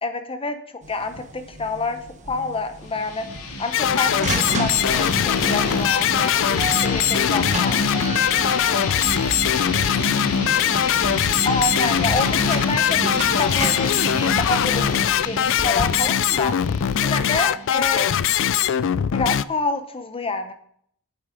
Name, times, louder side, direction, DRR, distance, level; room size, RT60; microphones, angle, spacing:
voice 1, 0.0-0.6 0.9-2.0 2.2-3.3 3.6-7.8 11.4-16.5 17.0-18.1 19.1-20.5, left 3 dB, 25° left, 9 dB, 0.8 m, -27 dB
sound 1, 0.8-16.5, right 2 dB, 35° right, 1.2 m, -34 dB
sound 2, 2.9-18.3, left 2 dB, 75° left, 2.1 m, -29 dB
sound 3, 3.7-19.4, left 9 dB, 60° left, 0.4 m, -21 dB
voice 2, 7.6-11.2 12.2-12.4 16.5-17.7, right 2 dB, 55° right, 2 dB, 2.6 m, -42 dB
8.3 x 8.0 x 5.1 m, 0.64 s
head